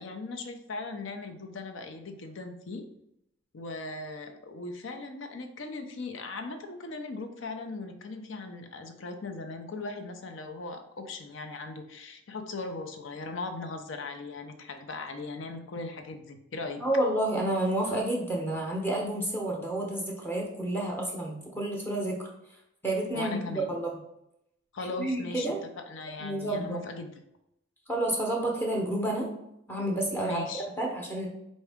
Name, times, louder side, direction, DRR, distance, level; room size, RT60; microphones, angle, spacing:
voice 1, 0.0-2.9 3.5-16.8 23.1-23.7 24.7-27.1 30.2-30.7, left 3 dB, 65° left, 6 dB, 0.5 m, -39 dB
voice 2, 16.8-22.3 22.8-23.9 25.0-25.6 26.2-26.8 27.9-29.3 29.7-30.4 30.8-31.3, right 1 dB, 10° left, -2 dB, 0.8 m, -30 dB
4.6 x 2.7 x 3.4 m, 0.82 s
head